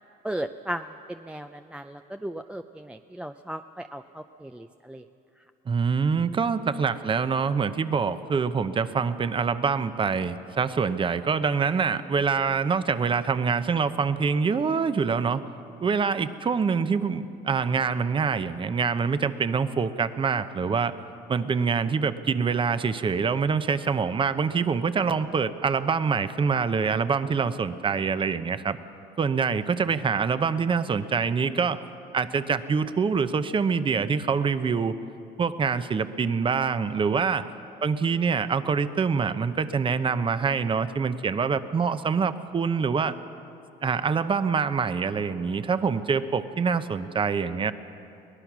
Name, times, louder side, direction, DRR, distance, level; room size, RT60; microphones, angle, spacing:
voice 1, 0.2-5.0, right 1 dB, 5° right, 7 dB, 0.5 m, -36 dB
voice 2, 5.7-15.4 15.8-20.9 21.3-28.8 29.2-31.8 32.1-35.0 35.4-37.5 37.8-43.1 43.8-47.7, right 5 dB, 30° right, 12 dB, 0.8 m, -25 dB
23.0 x 18.5 x 6.1 m, 2.7 s
cardioid pair, 110°, 17 cm